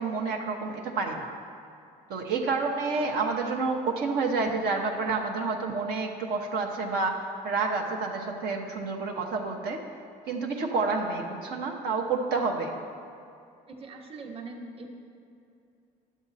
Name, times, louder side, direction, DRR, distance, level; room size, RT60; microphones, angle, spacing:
voice 1, 0.0-1.3 2.1-9.8 10.3-12.7, right 4 dB, 80° right, 0 dB, 0.9 m, -29 dB
voice 2, 13.7-14.9, right 3 dB, 35° right, 2 dB, 1.2 m, -41 dB
11.0 x 7.4 x 4.1 m, 2.5 s
cardioid pair, 110°, 17 cm